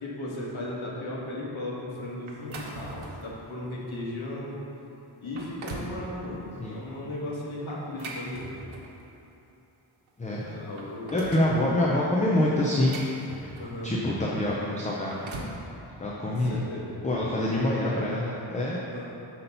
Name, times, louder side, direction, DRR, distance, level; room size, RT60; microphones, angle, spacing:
voice 1, 0.0-4.5 5.2-8.4 10.4-11.2 13.6-13.9 16.3-16.9 18.9-19.1, left 1 dB, 80° left, -5 dB, 1.4 m, -36 dB
sound 1, 2.3-3.3 3.9-4.1 4.7-4.8 5.2-6.0 7.7-9.0 10.1-10.2 10.5-11.6 12.4-13.8 14.8-15.6, right 2 dB, 90° right, 0.9 m, -40 dB
voice 2, 11.1-13.0 13.3-13.5 13.8-15.3 16.0-16.6 17.0-18.8, left 1 dB, 15° left, -4 dB, 0.4 m, -26 dB
5.7 x 4.1 x 5.4 m, 2.9 s
wide cardioid pair, 165°, 46 cm